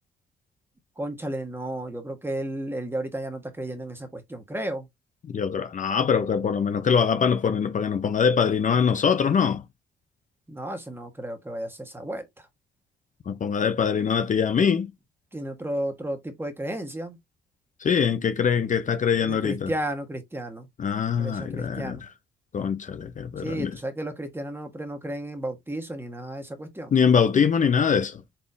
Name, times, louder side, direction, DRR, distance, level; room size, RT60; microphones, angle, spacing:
voice 1, 1.0-4.9 10.5-12.3 15.3-17.2 19.2-20.7 21.2-22.0 23.4-26.9, right 1 dB, 10° right, 1.4 m, -33 dB
voice 2, 5.3-9.6 13.3-14.9 17.8-19.7 20.8-22.1 22.5-23.8 26.9-28.2, left 6 dB, 40° left, 0.6 m, -23 dB
4.2 x 3.5 x 2.7 m
cardioid pair, 90°, 20 cm